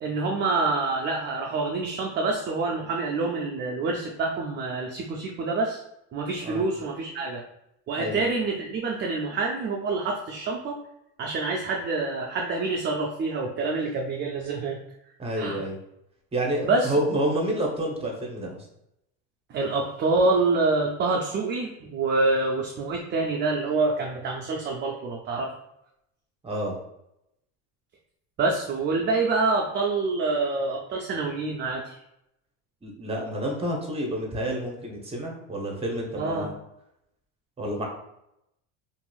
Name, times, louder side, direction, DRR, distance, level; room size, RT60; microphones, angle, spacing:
voice 1, 0.0-5.8 6.1-7.4 7.9-10.8 11.2-14.8 15.4-15.6 16.6-17.0 19.5-25.5 28.4-32.0 36.2-36.5, right 3 dB, 30° right, 0 dB, 0.4 m, -26 dB
voice 2, 15.2-15.8 16.3-18.6 26.4-26.7 32.8-36.5 37.6-37.9, right 1 dB, 15° right, 0 dB, 0.8 m, -29 dB
2.9 x 2.6 x 2.3 m, 0.81 s
supercardioid pair, 100°, 37 cm